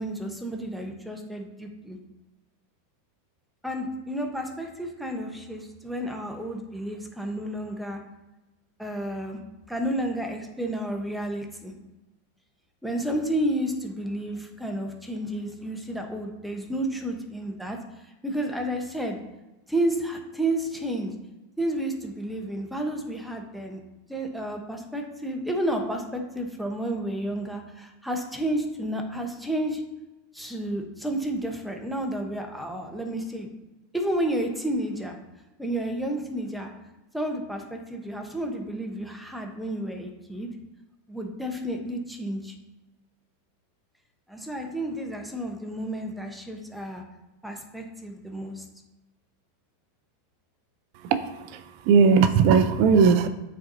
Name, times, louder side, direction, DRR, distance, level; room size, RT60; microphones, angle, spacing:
voice 1, 0.0-2.0 3.6-8.0 8.8-9.4 9.7-11.7 12.8-17.8 18.2-19.2 19.7-21.1 21.6-23.8 24.1-29.8 30.3-33.5 33.9-35.2 35.6-36.7 37.1-40.5 41.1-42.5 44.3-47.0 47.4-48.6, right 1 dB, ahead, 2 dB, 0.8 m, -31 dB
voice 2, 51.0-53.3, right 5 dB, 55° right, 10 dB, 0.5 m, -19 dB
8.5 x 4.2 x 2.7 m, 1.0 s
supercardioid pair, 130°, 0 cm